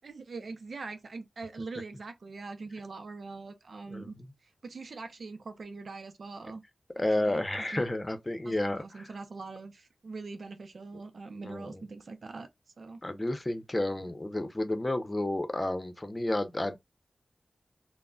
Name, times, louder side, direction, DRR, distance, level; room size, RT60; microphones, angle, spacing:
voice 1, 0.0-4.2 4.4-6.6 7.0-7.4 7.7-7.8 8.4-12.5 12.8-13.0, right 3 dB, 80° right, 0.5 m, -42 dB
voice 2, 3.9-4.3 7.0-9.1 11.4-11.8 13.0-16.8, left 1 dB, 30° left, 0.6 m, -31 dB
3.7 x 2.1 x 2.2 m
wide cardioid pair, 60°, 0 cm